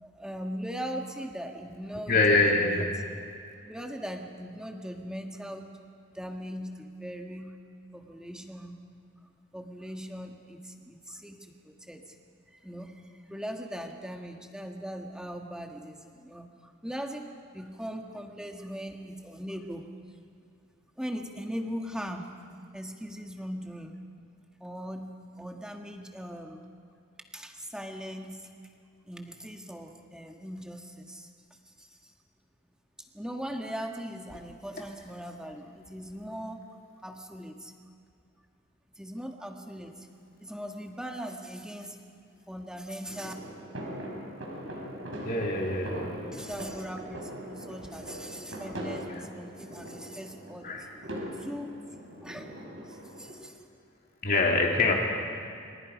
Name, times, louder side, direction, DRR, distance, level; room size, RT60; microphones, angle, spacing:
voice 1, 0.0-2.9 3.6-5.8 6.1-7.6 7.9-8.8 9.5-12.2 12.5-17.3 17.5-19.9 21.0-22.3 22.7-24.0 24.6-25.1 25.4-26.6 27.3-28.5 29.1-32.0 33.0-36.6 37.0-37.7 39.0-40.1 40.4-42.0 42.5-43.3 46.3-50.9 51.4-51.8 52.2-52.5 52.8-53.6, equal, 5° right, 2 dB, 1.7 m, -40 dB
voice 2, 2.1-2.9 45.2-46.1 49.1-49.2 50.6-50.9 54.2-54.9, left 3 dB, 50° left, -1 dB, 2.8 m, -24 dB
sound 1, 43.1-53.3, equal, 80° right, 5.6 m, -40 dB
28.5 x 25.5 x 5.3 m, 2.4 s
head